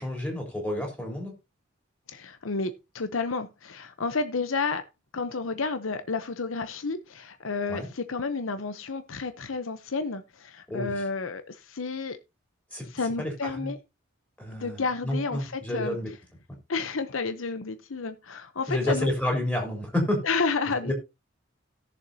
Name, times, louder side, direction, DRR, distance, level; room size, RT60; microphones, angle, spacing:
voice 1, 0.0-1.3 7.7-7.9 10.7-11.0 12.7-12.9 13.2-13.7 14.4-16.1 18.7-20.2 20.9-21.0, left 1 dB, 10° left, 3.8 m, -29 dB
voice 2, 2.1-4.8 5.1-12.2 12.9-13.8 14.5-16.0 16.7-19.1 20.2-20.9, left 4 dB, 80° left, 0.8 m, -31 dB
17.5 x 7.0 x 2.8 m
head